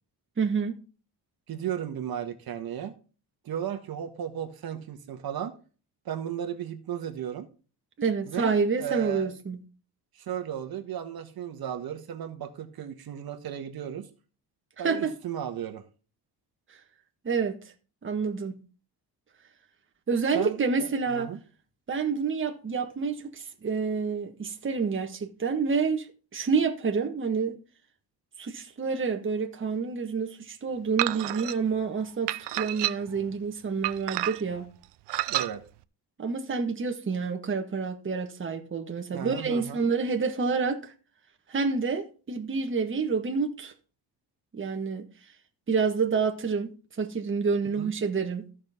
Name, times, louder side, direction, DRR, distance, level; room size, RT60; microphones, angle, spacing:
voice 1, 0.4-0.8 8.0-9.6 14.8-15.1 17.2-17.6 18.0-18.5 20.1-21.3 21.9-26.1 26.3-27.6 28.4-34.6 36.2-40.9 41.5-43.7 44.5-45.0 45.7-48.4, right 5 dB, 30° right, 1.6 m, -28 dB
voice 2, 1.5-2.9 3.4-5.6 6.0-7.5 8.2-9.3 10.1-14.1 14.8-15.8 20.3-21.4 35.3-35.6 39.1-39.8 47.8-47.9, right 9 dB, 60° right, 1.6 m, -35 dB
sound 1, 31.0-31.6 32.3-33.2 33.8-34.6 35.1-35.5, right 16 dB, 80° right, 0.7 m, -29 dB
14.5 x 6.4 x 3.7 m
cardioid pair, 135°, 41 cm